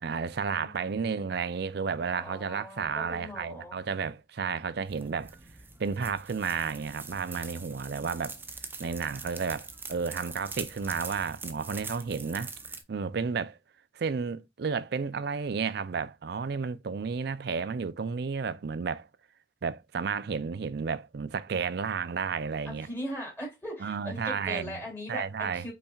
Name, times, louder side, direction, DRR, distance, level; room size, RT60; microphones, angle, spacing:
voice 1, 0.0-5.3 5.8-8.4 8.8-12.5 12.9-13.6 13.9-19.1 19.6-22.9 23.8-24.8 25.1-25.7, right 5 dB, 55° right, 0.4 m, -32 dB
voice 2, 0.5-1.3 2.1-3.8 22.6-25.7, equal, 10° left, 3.0 m, -40 dB
sound 1, 4.9-12.8, right 4 dB, 10° right, 0.6 m, -44 dB
5.6 x 4.1 x 2.3 m
head